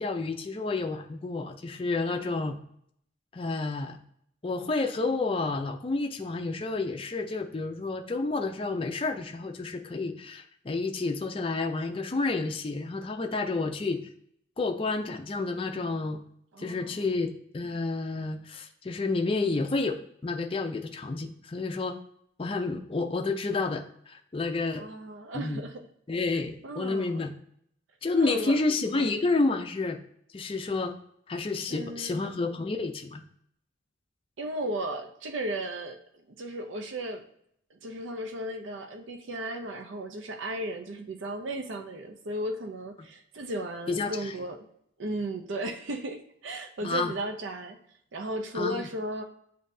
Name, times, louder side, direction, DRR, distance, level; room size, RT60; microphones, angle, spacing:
voice 1, 0.0-2.6 3.3-4.0 4.4-14.0 14.6-16.2 16.6-22.0 22.4-24.8 25.3-25.6 26.1-27.3 28.0-30.0 30.3-30.9 31.3-33.2 43.9-44.3 46.8-47.1 48.5-48.9, left 3 dB, 30° left, 4 dB, 0.4 m, -30 dB
voice 2, 16.5-17.1 24.7-25.8 26.6-27.3 28.2-28.6 28.9-29.1 31.7-32.2 34.4-36.0 36.4-37.2 37.7-44.7 45.0-47.8 48.1-49.2, right 1 dB, 75° right, 5 dB, 0.5 m, -35 dB
7.3 x 2.6 x 2.6 m, 0.69 s
head